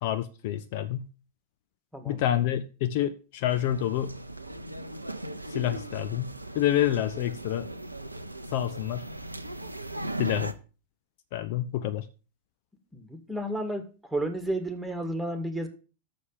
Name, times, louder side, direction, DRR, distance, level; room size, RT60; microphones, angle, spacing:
voice 1, 0.0-1.1 2.1-4.2 5.5-7.7 8.5-9.1 10.2-10.5 11.3-12.1, left 12 dB, 50° left, 0.6 m, -28 dB
sound 1, 3.5-10.5, right 1 dB, 85° right, 0.6 m, -38 dB
voice 2, 12.9-13.8 14.1-15.7, right 1 dB, 5° right, 1.9 m, -31 dB
6.8 x 6.3 x 7.4 m
figure-of-eight pair, 90°, 0 cm